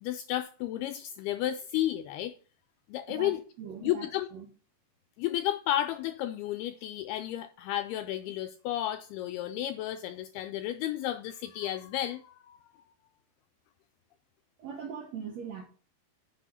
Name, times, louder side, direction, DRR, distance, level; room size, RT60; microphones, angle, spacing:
voice 1, 0.0-2.3 2.9-3.4 3.8-4.3 5.2-12.6, left 13 dB, 85° left, 2.2 m, -32 dB
voice 2, 3.6-4.5 14.6-15.6, right 7 dB, 90° right, 1.5 m, -40 dB
7.9 x 6.2 x 8.0 m
omnidirectional pair, 5.0 m